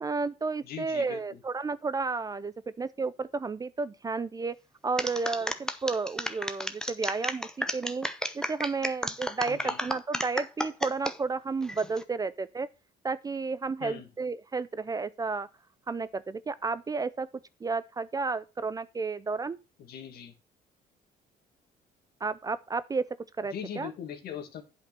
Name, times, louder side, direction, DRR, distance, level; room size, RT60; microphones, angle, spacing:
voice 1, 0.0-4.5 4.8-8.1 8.3-12.7 13.0-15.5 15.9-17.3 17.6-19.6 22.2-23.0 23.4-23.9, right 4 dB, 20° right, 0.4 m, -32 dB
voice 2, 0.6-1.4 9.5-9.8 13.8-14.1 19.9-20.3 23.5-24.6, left 8 dB, 65° left, 2.0 m, -40 dB
sound 1, 5.0-11.1 11.6-12.0, left 1 dB, 5° left, 0.8 m, -32 dB
8.5 x 5.2 x 6.1 m
cardioid pair, 110°, 17 cm